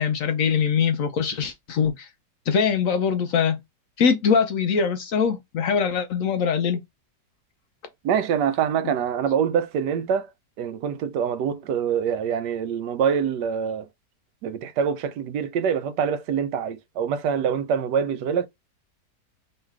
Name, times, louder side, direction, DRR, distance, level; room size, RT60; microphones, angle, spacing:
voice 1, 0.0-2.1 2.5-3.6 4.0-6.8, left 6 dB, 65° left, 0.8 m, -22 dB
voice 2, 8.0-10.3 10.6-13.9 14.4-18.5, right 7 dB, 85° right, 1.2 m, -25 dB
3.2 x 2.9 x 4.6 m
omnidirectional pair, 1.8 m